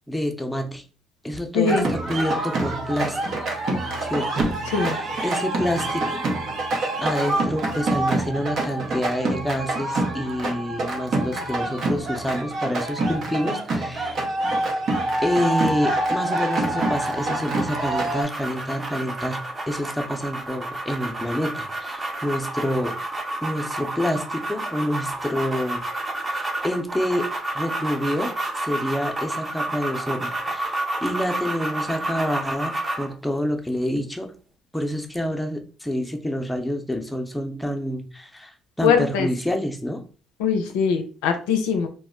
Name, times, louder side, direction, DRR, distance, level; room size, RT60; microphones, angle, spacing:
voice 1, 0.1-0.8 1.2-3.2 3.4-3.5 4.0-6.2 7.0-14.2 15.2-23.0 23.4-25.8 26.3-27.3 27.5-34.3 34.7-40.0, equal, 5° left, 4 dB, 0.7 m, -28 dB
voice 2, 1.5-1.9 4.7-5.0 38.8-39.3 40.4-41.9, left 6 dB, 85° left, 5 dB, 0.4 m, -21 dB
sound 1, 1.7-18.2, right 2 dB, 60° right, 0.8 m, -26 dB
sound 2, 16.6-33.1, right 2 dB, 30° right, 0.8 m, -30 dB
2.1 x 2.0 x 3.7 m, 0.38 s
supercardioid pair, 65°, 0 cm